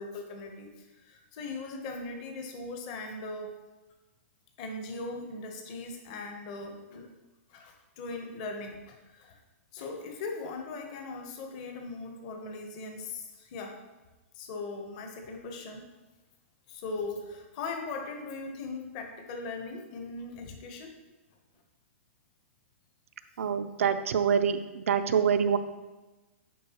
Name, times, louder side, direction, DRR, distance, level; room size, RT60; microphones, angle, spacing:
voice 1, 0.0-3.5 4.6-7.1 7.5-9.4 9.7-13.7 14.3-15.9 16.7-20.9, left 3 dB, 30° left, 3 dB, 0.8 m, -39 dB
voice 2, 23.4-25.6, right 7 dB, 85° right, 10 dB, 0.5 m, -26 dB
9.2 x 4.5 x 2.9 m, 1.1 s
hypercardioid pair, 170°, 7 cm